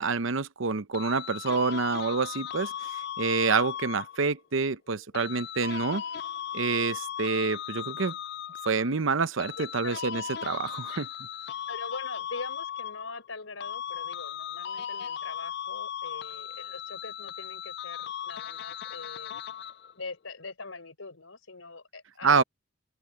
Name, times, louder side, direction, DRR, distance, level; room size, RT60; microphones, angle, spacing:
voice 1, 0.0-2.9 3.2-6.0 6.5-8.1 8.7-11.1 22.2-22.4, right 4 dB, 75° right, 0.8 m, -27 dB
sound 1, 0.9-4.3 5.1-8.9 9.4-13.3 13.6-19.9, left 9 dB, 55° left, 0.4 m, -37 dB
voice 2, 9.6-10.0 10.9-11.0 11.7-19.3 20.0-22.4, left 3 dB, 85° left, 4.5 m, -42 dB
open air
head